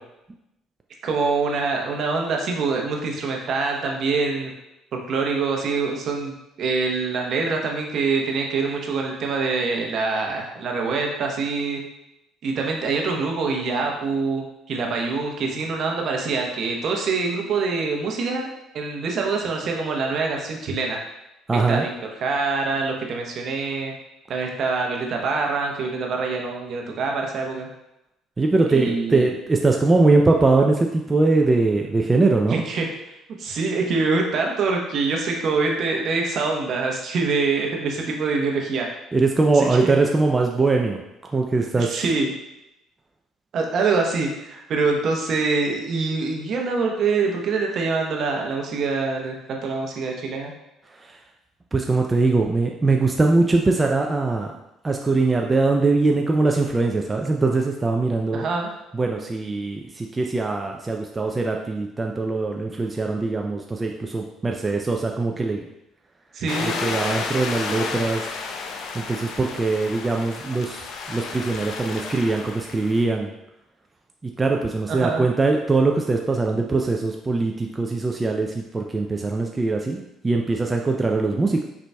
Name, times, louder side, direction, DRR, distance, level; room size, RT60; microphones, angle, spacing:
voice 1, 1.0-4.5 5.1-11.8 12.4-18.5 18.7-21.0 21.5-23.9 24.3-27.7 28.7-29.3 32.5-32.9 33.4-38.9 39.5-39.9 41.8-42.3 43.5-50.5 58.3-58.7 66.3-67.2 74.9-75.3, right 4 dB, 60° right, 1 dB, 0.8 m, -25 dB
voice 2, 21.5-21.9 28.4-32.6 39.1-41.0 41.3-42.0 51.7-54.5 54.8-58.5 58.9-65.6 66.6-68.3 68.9-73.3 74.2-81.6, right 3 dB, 20° right, 1 dB, 0.4 m, -21 dB
sound 1, 66.5-73.0, left 4 dB, 70° left, 0.5 m, -32 dB
4.6 x 3.9 x 2.2 m, 0.88 s
supercardioid pair, 90°, 0 cm